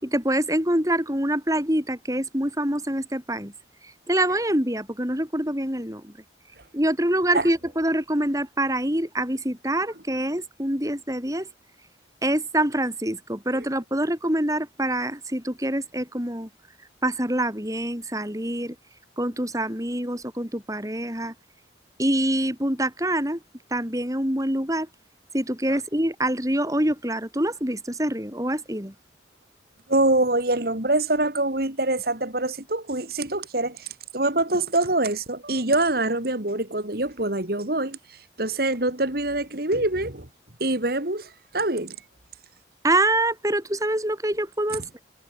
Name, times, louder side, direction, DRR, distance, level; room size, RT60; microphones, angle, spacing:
voice 1, 0.0-3.5 4.1-6.1 6.7-11.5 12.2-16.5 17.0-18.7 19.2-21.3 22.0-23.4 23.7-24.9 25.3-28.9 42.8-44.8, right 1 dB, 20° right, 6.0 m, -25 dB
voice 2, 29.9-40.3 40.6-42.0, right 2 dB, 55° right, 2.7 m, -25 dB
head